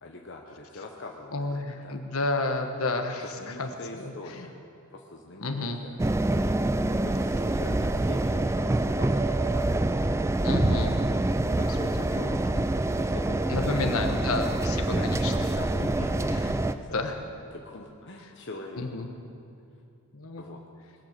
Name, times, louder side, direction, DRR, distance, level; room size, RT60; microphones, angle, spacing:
voice 1, 0.0-2.0 3.2-4.5 4.9-6.0 6.8-10.0 11.3-12.4 12.9-14.2 14.9-17.0 17.5-18.9 20.4-20.6, left 2 dB, 55° left, 0 dB, 1.0 m, -43 dB
voice 2, 1.3-3.3 3.6-4.5 5.4-5.8 10.4-11.0 11.5-11.7 11.9-12.2 13.5-15.3 16.3-16.6 16.9-17.2 18.7-19.1 20.1-20.4, left 2 dB, 70° left, 5 dB, 1.3 m, -31 dB
sound 1, 6.0-16.7, right 2 dB, 10° right, 0.3 m, -26 dB
21.0 x 9.2 x 6.7 m, 2.5 s
head